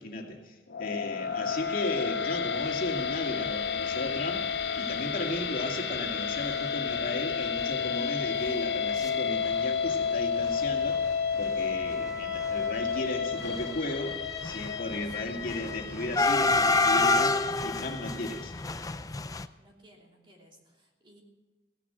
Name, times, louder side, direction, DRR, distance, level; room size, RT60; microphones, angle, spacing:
voice 1, 0.0-4.5 4.8-11.0 11.4-18.5, left 1 dB, 50° left, 0 dB, 2.3 m, -35 dB
sound 1, 0.7-18.9, left 6 dB, 75° left, 1.4 m, -32 dB
sound 2, 3.5-3.7 4.2-4.3 4.4-4.6 5.4-5.5 5.9-6.1 6.4-6.5 6.9-9.1 9.3-10.1 10.3-19.5, left 3 dB, 20° left, 0.5 m, -29 dB
voice 2, 19.6-21.2, equal, 30° right, -1 dB, 3.1 m, -56 dB
16.5 x 11.0 x 7.7 m, 1.2 s
head